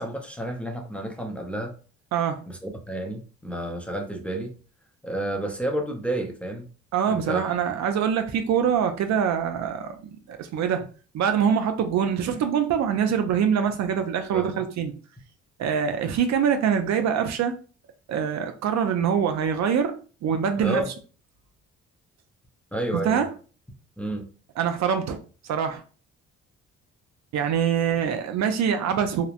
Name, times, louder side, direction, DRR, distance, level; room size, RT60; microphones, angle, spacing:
voice 1, 0.0-1.7 2.5-4.5 5.0-6.7 7.1-7.4 14.3-14.5 20.6-20.9 22.7-23.3 24.0-24.3, right 1 dB, 5° left, 0.5 m, -30 dB
voice 2, 2.1-2.4 6.9-10.8 11.1-14.9 15.6-17.5 18.1-20.0 20.2-20.8 23.0-23.3 24.6-25.2 25.5-25.8 27.3-29.3, right 7 dB, 65° right, 0.5 m, -24 dB
2.9 x 2.0 x 2.4 m
cardioid pair, 90°, 30 cm